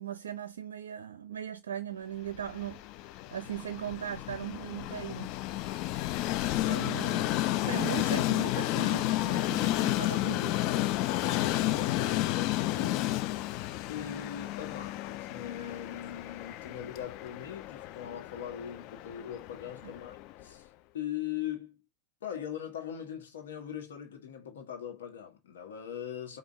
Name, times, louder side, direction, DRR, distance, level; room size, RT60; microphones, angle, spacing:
voice 1, 0.0-5.3 6.5-10.6 19.8-19.9, right 9 dB, 65° right, 0.4 m, -39 dB
Train, 2.4-20.4, left 15 dB, 40° left, 0.4 m, -32 dB
voice 2, 11.2-13.3 13.9-20.7 20.9-21.8 22.2-26.4, left 9 dB, 60° left, 1.3 m, -40 dB
5.1 x 2.4 x 3.6 m
figure-of-eight pair, 90°, 0 cm